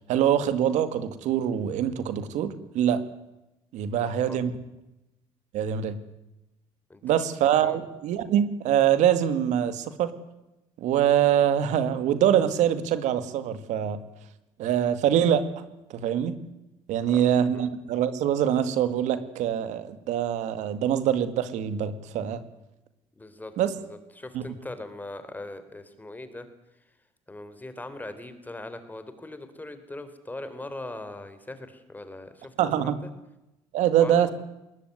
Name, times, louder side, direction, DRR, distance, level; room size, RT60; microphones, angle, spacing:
voice 1, 0.1-3.0 3.7-4.5 5.5-6.0 7.0-10.1 10.8-14.0 14.6-15.4 15.9-16.3 16.9-22.4 23.6-23.7 24.3-24.4 32.6-33.0 33.7-34.3, right 10 dB, 75° right, 12 dB, 2.1 m, -24 dB
voice 2, 3.8-4.4 6.9-7.0 7.6-7.8 17.1-17.2 17.5-17.7 23.2-26.5 27.3-32.5 32.8-32.9 34.0-34.3, left 2 dB, 15° left, 10 dB, 3.8 m, -40 dB
20.5 x 19.5 x 9.5 m, 0.93 s
cardioid pair, 90°, 12 cm